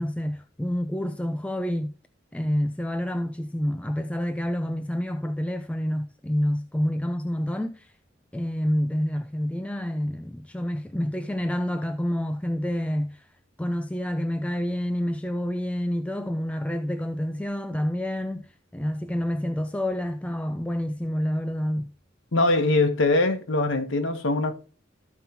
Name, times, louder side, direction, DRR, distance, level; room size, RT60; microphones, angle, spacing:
voice 1, 0.0-1.9 2.3-7.9 8.3-13.3 13.6-18.5 18.7-21.9, equal, 5° left, 0.4 m, -28 dB
voice 2, 22.3-24.5, left 2 dB, 80° left, 1.2 m, -22 dB
13.5 x 5.3 x 2.9 m
head